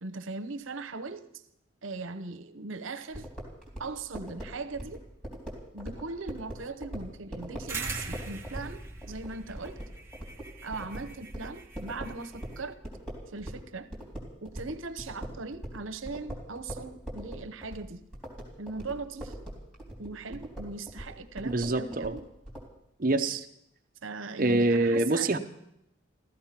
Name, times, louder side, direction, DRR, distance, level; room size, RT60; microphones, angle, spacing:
voice 1, 0.0-1.4 1.8-3.3 3.8-5.0 5.7-9.8 10.6-12.8 13.3-13.9 14.4-18.0 18.6-19.4 20.0-22.2 24.0-25.3, right 3 dB, 85° right, 9 dB, 1.0 m, -39 dB
sound 1, 3.1-13.7 13.9-22.7, right 1 dB, 5° left, 3.6 m, -41 dB
sound 2, 7.7-12.6, right 3 dB, 10° right, 1.2 m, -41 dB
voice 2, 21.4-22.2 23.0-23.5 24.4-25.4, right 2 dB, 45° right, 3 dB, 0.8 m, -25 dB
15.0 x 14.0 x 5.9 m, 0.78 s
head